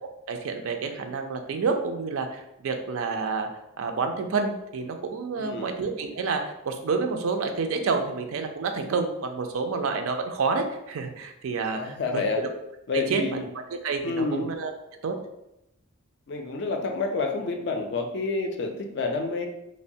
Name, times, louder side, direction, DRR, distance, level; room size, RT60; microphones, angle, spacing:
voice 1, 0.0-3.5 3.8-12.5 12.9-13.4 13.8-14.7 15.0-15.2, right 4 dB, 75° right, 5 dB, 0.4 m, -29 dB
voice 2, 5.4-5.7 11.7-12.4 12.9-13.4 14.0-14.4 16.3-19.5, left 3 dB, 50° left, 4 dB, 0.3 m, -28 dB
2.9 x 2.1 x 2.6 m, 0.86 s
head